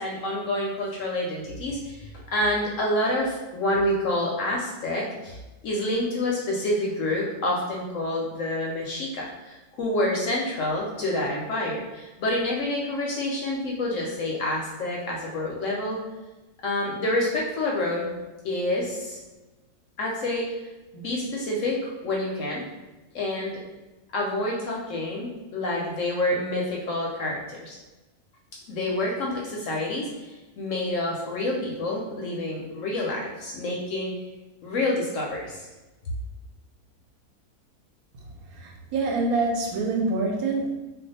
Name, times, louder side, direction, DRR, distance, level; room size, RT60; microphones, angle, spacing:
voice 1, 0.0-5.4 5.6-16.0 16.6-18.1 18.4-19.2 20.0-20.6 20.9-22.6 23.1-23.6 24.1-27.8 28.7-34.1 34.6-35.7, left 1 dB, 65° left, -2 dB, 0.8 m, -28 dB
voice 2, 38.5-40.7, right 3 dB, 70° right, 0 dB, 1.0 m, -26 dB
2.5 x 2.3 x 4.0 m, 1.1 s
omnidirectional pair, 1.7 m